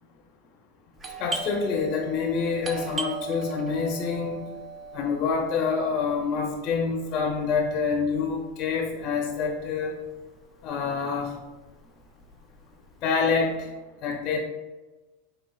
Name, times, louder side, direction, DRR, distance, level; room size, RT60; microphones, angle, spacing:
Doorbell, 1.0-10.4 10.6-10.7 11.4-11.7 12.0-13.4, right 3 dB, 25° right, 0.4 m, -38 dB
voice 1, 1.2-4.4 4.9-9.9 10.6-11.3 13.0-13.7 14.0-14.4, left 5 dB, 35° left, 1 dB, 0.5 m, -27 dB
4.2 x 3.9 x 2.2 m, 1.2 s
supercardioid pair, 140°, 0 cm